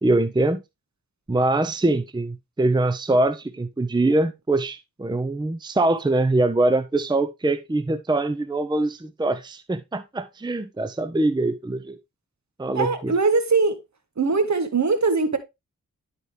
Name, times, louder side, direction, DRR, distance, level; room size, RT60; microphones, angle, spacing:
voice 1, 0.0-0.6 1.3-12.0 12.6-13.1, right 2 dB, 15° right, 0.6 m, -23 dB
voice 2, 12.7-13.8 14.2-15.4, right 4 dB, 55° right, 1.4 m, -21 dB
11.0 x 4.3 x 3.2 m
cardioid pair, 50°, 33 cm